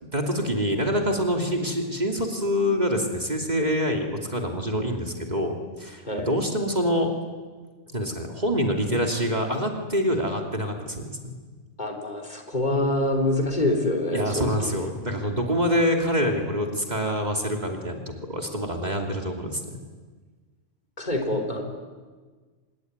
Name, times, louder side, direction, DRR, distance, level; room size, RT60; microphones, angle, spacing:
voice 1, 0.0-7.1 7.9-11.3 14.1-19.8, equal, 35° right, 2 dB, 3.0 m, -26 dB
voice 2, 11.8-14.8 21.0-21.6, left 1 dB, 40° left, 4 dB, 4.1 m, -26 dB
26.0 x 21.5 x 9.6 m, 1.4 s
omnidirectional pair, 1.3 m